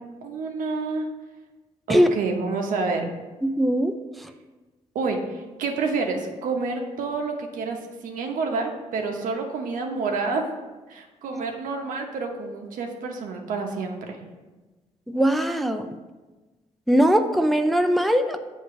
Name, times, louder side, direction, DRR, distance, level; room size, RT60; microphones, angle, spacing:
voice 1, 0.2-1.1 1.9-3.1 4.9-5.2 5.6-10.4 10.9-14.2, right 4 dB, 85° right, 2 dB, 1.0 m, -28 dB
voice 2, 3.4-3.9 11.3-11.4 15.1-15.9 16.9-18.4, equal, ahead, 6 dB, 0.5 m, -20 dB
7.5 x 3.6 x 5.8 m, 1.2 s
cardioid pair, 65°, 13 cm